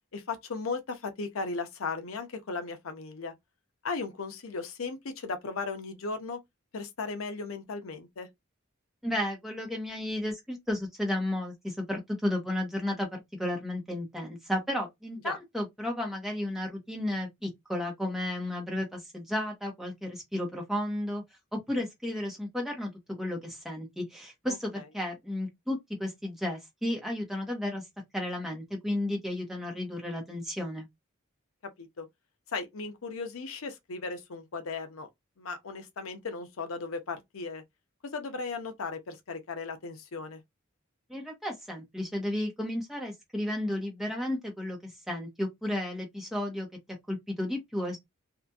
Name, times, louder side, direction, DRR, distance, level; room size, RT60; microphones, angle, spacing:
voice 1, 0.1-3.3 3.8-6.4 6.7-8.3 15.2-15.4 24.5-24.8 31.6-32.1 32.5-35.1 35.4-37.6 38.0-40.4, left 4 dB, 80° left, 0.6 m, -36 dB
voice 2, 9.0-21.2 21.5-22.9 23.2-27.8 28.1-30.9 41.1-46.7 47.1-48.0, left 1 dB, ahead, 1.0 m, -33 dB
2.7 x 2.5 x 2.3 m
head